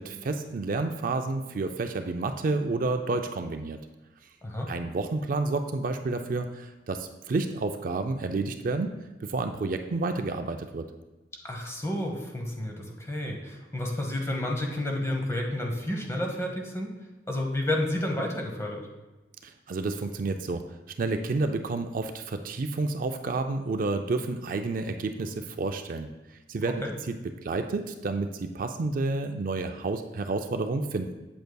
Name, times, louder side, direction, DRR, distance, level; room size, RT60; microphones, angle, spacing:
voice 1, 0.0-3.8 4.7-8.9 9.2-10.9 19.4-20.6 21.0-26.1 26.5-27.1 27.4-31.1, right 3 dB, 50° right, 6 dB, 0.4 m, -30 dB
voice 2, 11.4-16.9 17.3-18.8 26.8-26.9, left 1 dB, 15° left, 1 dB, 1.0 m, -30 dB
7.9 x 7.8 x 2.3 m, 1.1 s
head